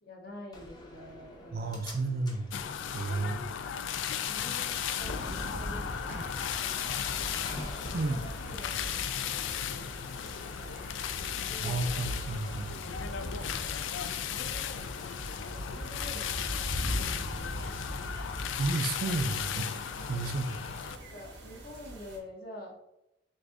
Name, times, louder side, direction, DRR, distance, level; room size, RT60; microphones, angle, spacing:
voice 1, 0.0-2.0 4.3-6.9 7.6-12.0 12.8-13.9 14.2-17.9 19.7-20.0 20.9-22.8, left 1 dB, 50° left, 0 dB, 0.9 m, -49 dB
Slam, 0.5-9.5, left 1 dB, 20° left, 0.7 m, -49 dB
voice 2, 1.5-2.6 2.9-3.4 6.1-6.3 7.9-8.2 11.6-12.8 18.6-19.8 20.1-20.8, right 3 dB, 50° right, 8 dB, 0.4 m, -32 dB
sound 1, 2.5-21.0, left 9 dB, 85° left, 0.3 m, -36 dB
sound 2, 5.0-22.2, equal, 85° right, 1.1 m, -41 dB
6.6 x 2.6 x 2.4 m, 0.86 s
head